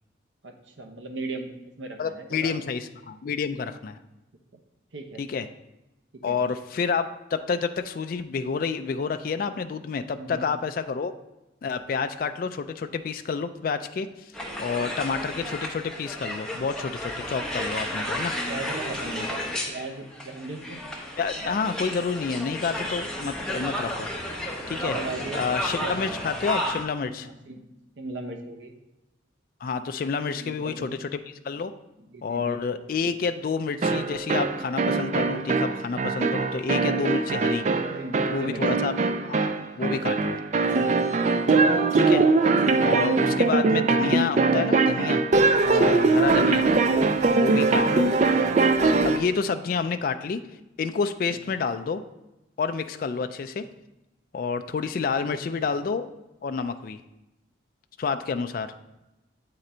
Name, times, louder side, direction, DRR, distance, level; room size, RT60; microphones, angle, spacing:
voice 1, 0.4-1.5 1.8-2.6 4.9-5.2 6.1-6.4 10.1-10.5 18.1-20.8 24.7-25.4 25.7-25.9 27.2-27.7 28.0-28.7 30.3-31.0 32.1-32.6 37.9-38.7 40.2-40.5 45.5-46.3 47.3-47.9 55.0-55.7, right 2 dB, 75° right, 4 dB, 0.8 m, -38 dB
voice 2, 2.0-4.0 5.2-5.5 6.2-11.1 11.6-14.1 14.6-18.3 21.2-24.1 24.7-25.0 25.3-27.3 29.6-31.2 31.4-31.7 32.2-37.6 38.3-38.9 39.2-39.5 39.8-40.4 41.9-42.2 42.8-45.2 45.6-46.6 47.3-48.1 48.8-50.4 50.8-52.0 52.6-53.7 54.3-56.1 56.4-57.0 58.0-58.7, left 5 dB, 50° left, 9 dB, 0.3 m, -29 dB
sound 1, 14.3-26.8, left 1 dB, 5° left, 0.8 m, -32 dB
sound 2, 33.8-49.3, right 3 dB, 40° right, 0.3 m, -22 dB
8.1 x 3.8 x 4.3 m, 0.96 s
head